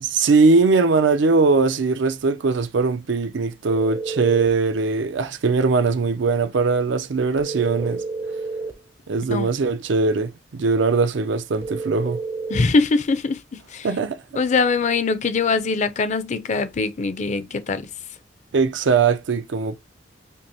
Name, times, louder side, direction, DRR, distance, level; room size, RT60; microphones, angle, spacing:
voice 1, 0.0-8.0 9.1-12.2 13.8-14.4 18.5-19.8, right 4 dB, 85° right, 0.5 m, -20 dB
sound 1, 3.7-4.6 7.4-8.8 11.6-12.6, right 3 dB, 15° right, 0.4 m, -30 dB
voice 2, 12.5-13.9 14.4-17.9, left 4 dB, 40° left, 0.4 m, -22 dB
5.3 x 2.0 x 2.7 m
head